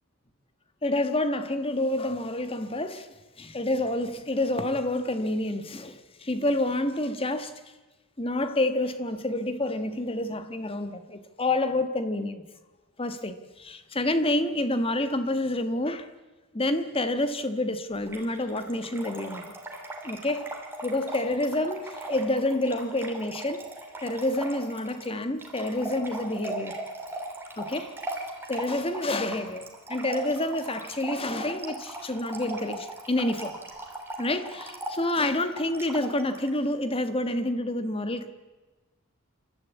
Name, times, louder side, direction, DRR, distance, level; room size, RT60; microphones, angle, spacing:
voice 1, 0.8-3.1 3.4-7.5 8.2-12.4 13.0-16.1 16.5-19.5 20.0-20.5 20.8-23.6 24.0-26.7 27.6-27.9 28.5-33.5 34.2-38.3, left 1 dB, 25° left, 1.4 m, -28 dB
Trickle dribble / Fill (with liquid), 18.0-36.5, right 2 dB, 10° right, 2.9 m, -39 dB
28.5 x 13.0 x 8.4 m
head